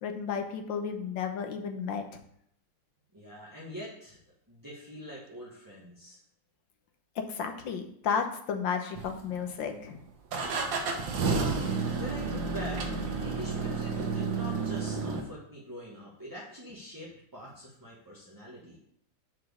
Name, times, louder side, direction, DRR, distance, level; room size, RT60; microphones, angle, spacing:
voice 1, 0.0-2.0 7.3-10.0, left 6 dB, 85° left, 5 dB, 1.7 m, -33 dB
voice 2, 3.1-4.2 4.5-6.2 11.2-18.8, equal, 10° right, -5 dB, 1.3 m, -44 dB
sound 1, 8.9-9.6 10.3-15.2, right 4 dB, 90° right, 1.8 m, -31 dB
6.3 x 4.6 x 6.3 m, 0.68 s
omnidirectional pair, 2.0 m